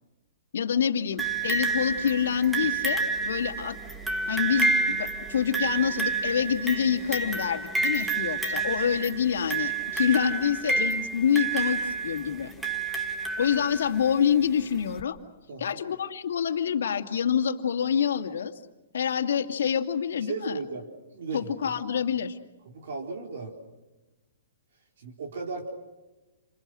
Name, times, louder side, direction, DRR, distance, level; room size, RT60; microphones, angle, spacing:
voice 1, 0.5-3.8 4.3-12.5 13.4-15.2 15.6-18.5 18.9-20.6 21.3-22.4, left 8 dB, 70° left, 4 dB, 2.4 m, -26 dB
sound 1, 1.2-14.0 15.0-15.1, right 3 dB, 5° right, 1.5 m, -29 dB
voice 2, 15.5-15.8 20.3-20.9 21.1-21.5 22.7-23.5 25.0-25.7, right 4 dB, 55° right, 1 dB, 4.5 m, -35 dB
29.5 x 28.0 x 6.4 m, 1.1 s
hypercardioid pair, 175°, 0 cm